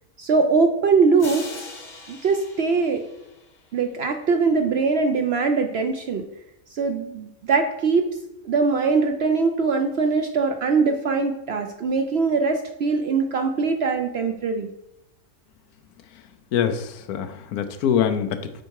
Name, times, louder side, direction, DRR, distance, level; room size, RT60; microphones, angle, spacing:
voice 1, 0.2-1.4 2.1-3.0 3.7-6.2 6.7-8.1 8.4-14.7, right 4 dB, 60° right, 5 dB, 0.7 m, -22 dB
sound 1, 1.2-3.9, left 3 dB, 35° left, 0.9 m, -40 dB
voice 2, 16.5-18.6, left 8 dB, 90° left, 10 dB, 1.2 m, -24 dB
7.8 x 4.7 x 4.6 m, 0.86 s
omnidirectional pair, 1.5 m